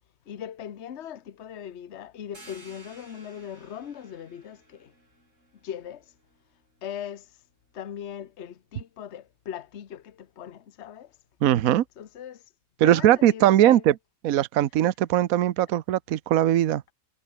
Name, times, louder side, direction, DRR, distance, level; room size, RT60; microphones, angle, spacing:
voice 1, 0.3-4.9 5.6-6.1 6.8-7.3 7.7-11.2 12.0-12.4 12.8-13.8 15.6-15.7, left 9 dB, 45° left, 1.2 m, -39 dB
sound 1, 2.3-7.7, right 2 dB, 45° right, 6.9 m, -54 dB
voice 2, 11.4-11.8 12.8-13.9 14.2-16.8, right 12 dB, 65° right, 1.1 m, -20 dB
omnidirectional pair, 1.8 m